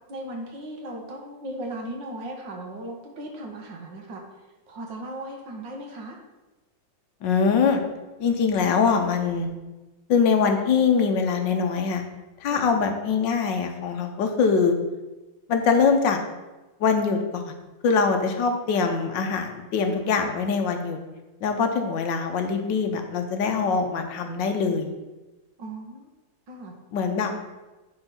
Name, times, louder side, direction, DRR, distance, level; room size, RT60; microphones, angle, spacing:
voice 1, 0.1-4.2 4.7-6.2 12.5-12.7 25.6-26.1 26.5-26.7, right 1 dB, 75° right, 2 dB, 2.1 m, -37 dB
voice 2, 7.2-7.8 8.2-9.5 10.1-12.0 12.4-14.7 15.5-16.2 16.8-17.5 17.8-21.0 21.4-24.9 26.9-27.3, left 5 dB, 75° left, 5 dB, 1.6 m, -23 dB
10.0 x 3.9 x 5.8 m, 1.1 s
omnidirectional pair, 2.0 m